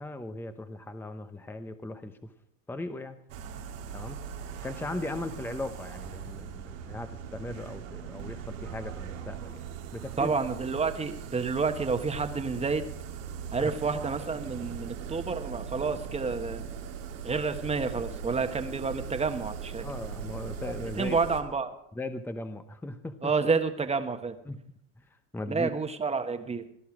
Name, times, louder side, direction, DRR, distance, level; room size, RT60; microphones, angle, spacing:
voice 1, 0.0-2.3 2.7-3.2 3.9-4.2 4.6-9.6 9.9-10.3 13.6-13.7 19.8-21.2 21.9-23.3 24.4-24.6 25.0-25.1 25.3-25.7, left 2 dB, 5° left, 9 dB, 0.8 m, -38 dB
sound 1, 3.3-21.4, right 7 dB, 90° right, 2.2 m, -40 dB
voice 2, 10.2-12.8 13.5-16.6 17.2-19.8 21.0-21.7 23.2-24.4 25.5-26.6, right 4 dB, 15° right, 7 dB, 1.3 m, -29 dB
18.5 x 11.5 x 4.9 m, 0.73 s
supercardioid pair, 105°, 38 cm